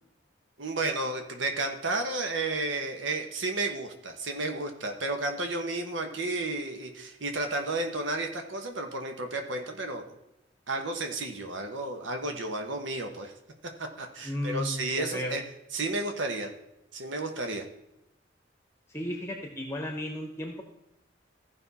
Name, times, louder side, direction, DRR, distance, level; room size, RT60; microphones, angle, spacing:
voice 1, 0.6-10.2 10.7-13.3 13.8-15.4 15.7-16.5 16.9-17.6, right 2 dB, 85° right, 5 dB, 1.1 m, -32 dB
voice 2, 14.2-15.3 18.9-20.6, left 1 dB, 15° left, 2 dB, 0.9 m, -34 dB
15.0 x 5.4 x 4.1 m, 0.87 s
head